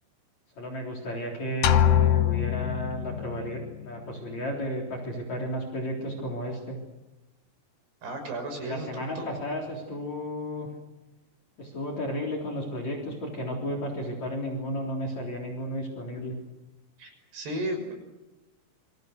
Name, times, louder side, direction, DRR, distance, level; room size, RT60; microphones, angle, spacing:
voice 1, 0.6-6.8 8.6-10.7 11.6-16.3, equal, 45° left, 3 dB, 4.9 m, -33 dB
sound 1, 1.6-3.5, left 11 dB, 70° left, 1.6 m, -23 dB
voice 2, 8.0-9.3 17.0-17.9, right 1 dB, 70° right, 4 dB, 8.2 m, -34 dB
27.5 x 26.5 x 6.8 m, 1.0 s
omnidirectional pair, 4.8 m